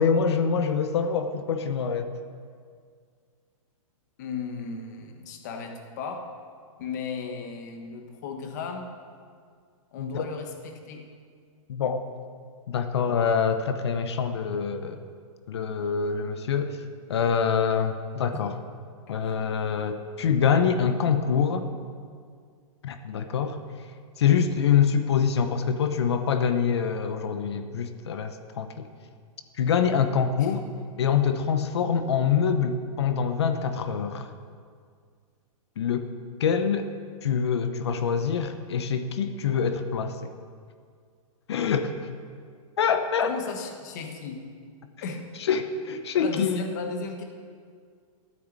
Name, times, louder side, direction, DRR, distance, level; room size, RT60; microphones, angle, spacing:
voice 1, 0.0-2.1 10.0-10.2 11.7-12.0 12.7-15.0 15.5-16.8 17.1-18.5 19.1-21.7 22.8-23.6 24.2-28.8 29.6-30.6 31.0-34.3 35.8-36.1 36.4-36.9 37.2-40.3 41.5-41.9 42.8-43.3 45.4-46.6, left 7 dB, 50° left, 8 dB, 0.9 m, -25 dB
voice 2, 4.2-6.2 6.8-8.9 9.9-11.0 19.2-19.3 30.4-30.5 43.2-44.4 45.0-45.2 46.1-47.2, left 5 dB, 30° left, 4 dB, 1.3 m, -35 dB
13.0 x 9.4 x 7.5 m, 2.1 s
hypercardioid pair, 180°, 18 cm